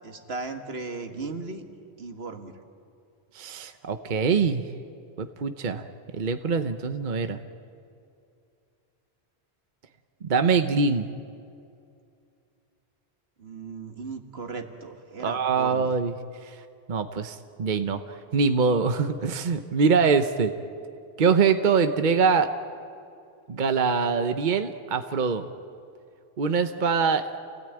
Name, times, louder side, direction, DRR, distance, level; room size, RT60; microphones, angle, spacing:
voice 1, 0.0-1.6 2.0-2.5 13.4-16.0, right 3 dB, 75° right, 6 dB, 1.9 m, -37 dB
voice 2, 3.3-4.6 5.2-5.9 6.1-7.4 10.2-11.1 15.2-16.1 16.4-16.6 16.9-20.5 21.2-22.5 23.5-25.4 26.4-27.2, right 5 dB, 50° right, 8 dB, 1.0 m, -24 dB
29.5 x 17.5 x 9.0 m, 2.5 s
omnidirectional pair, 1.1 m